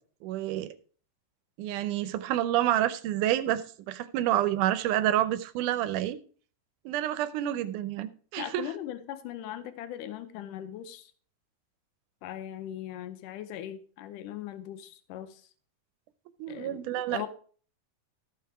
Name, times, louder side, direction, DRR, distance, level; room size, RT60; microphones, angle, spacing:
voice 1, 0.2-0.7 1.6-6.2 6.9-8.6 16.4-17.2, right 12 dB, 80° right, 14 dB, 2.2 m, -28 dB
voice 2, 8.4-11.1 12.2-15.4 16.5-17.3, left 11 dB, 80° left, 10 dB, 2.4 m, -39 dB
13.5 x 5.8 x 4.8 m, 0.42 s
omnidirectional pair, 3.7 m